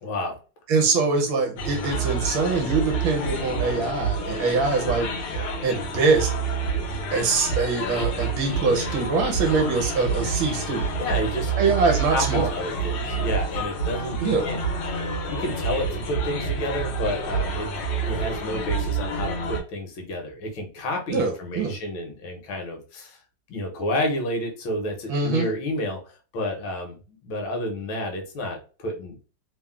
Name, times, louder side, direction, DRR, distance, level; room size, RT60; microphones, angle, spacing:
voice 1, 0.0-0.4 11.0-11.7 12.1-14.2 14.4-14.6 14.9-17.7 18.0-23.2 23.5-26.0 26.3-29.2, left 1 dB, 75° left, 2 dB, 1.4 m, -30 dB
voice 2, 0.7-5.1 5.6-6.3 7.1-10.9 11.6-12.5 14.2-14.5 21.1-21.8 25.1-25.5, right 4 dB, 75° right, 3 dB, 1.3 m, -23 dB
sound 1, 1.6-19.6, right 3 dB, 90° left, 1.5 m, -28 dB
3.5 x 2.0 x 2.2 m, 0.35 s
omnidirectional pair, 2.3 m